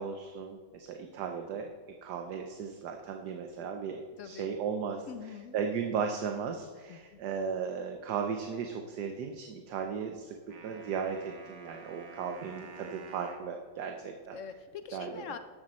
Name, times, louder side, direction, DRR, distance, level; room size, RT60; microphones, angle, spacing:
voice 1, 0.0-1.7 2.0-5.1 5.5-10.4 10.6-14.4 14.9-15.2, right 6 dB, 70° right, 4 dB, 1.4 m, -36 dB
voice 2, 4.2-4.5 5.1-5.6 6.9-7.2 14.3-15.4, left 7 dB, 70° left, 10 dB, 0.7 m, -44 dB
sound 1, 10.5-13.5, right 4 dB, 90° right, 2.0 m, -49 dB
12.5 x 11.5 x 4.3 m, 1.5 s
omnidirectional pair, 1.9 m